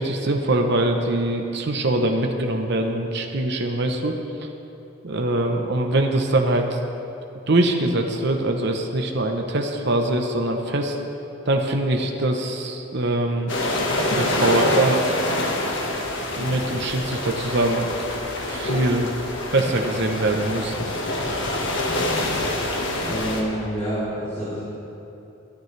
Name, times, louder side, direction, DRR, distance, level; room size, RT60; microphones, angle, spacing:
voice 1, 0.0-4.2 5.0-6.8 7.5-11.0 11.5-13.5 14.1-15.0 16.4-17.9 18.5-19.1 19.5-20.9, right 2 dB, 50° right, 3 dB, 0.8 m, -23 dB
sound 1, 13.5-23.4, left 1 dB, 55° left, 1.5 m, -26 dB
voice 2, 23.0-24.6, right 1 dB, 15° left, -13 dB, 3.1 m, -27 dB
22.0 x 9.3 x 3.3 m, 2.9 s
head